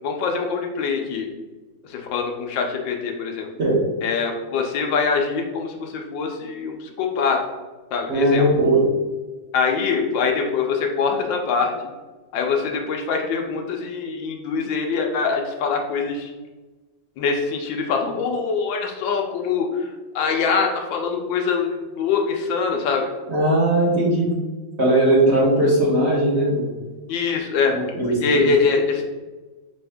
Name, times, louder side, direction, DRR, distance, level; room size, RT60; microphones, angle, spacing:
voice 1, 0.0-1.3 1.8-3.5 4.0-7.4 7.9-8.5 9.5-11.7 12.3-16.3 17.2-23.1 27.1-27.7 28.0-29.1, left 5 dB, 75° left, 2 dB, 1.3 m, -23 dB
voice 2, 8.1-8.8 23.3-24.3 24.8-26.7 27.7-28.5, right 1 dB, 45° right, -7 dB, 1.0 m, -19 dB
5.3 x 2.6 x 3.4 m, 1.2 s
omnidirectional pair, 2.1 m